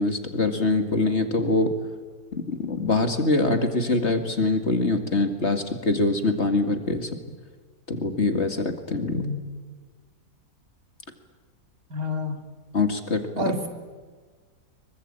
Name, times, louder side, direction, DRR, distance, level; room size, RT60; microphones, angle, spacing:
voice 1, 0.0-1.7 2.3-7.2 7.9-9.3 12.7-13.5, left 2 dB, 40° left, 7 dB, 2.3 m, -24 dB
voice 2, 9.1-9.4 11.9-12.4 13.4-13.7, left 2 dB, 60° right, 4 dB, 3.4 m, -28 dB
25.0 x 23.5 x 8.8 m, 1.4 s
omnidirectional pair, 1.7 m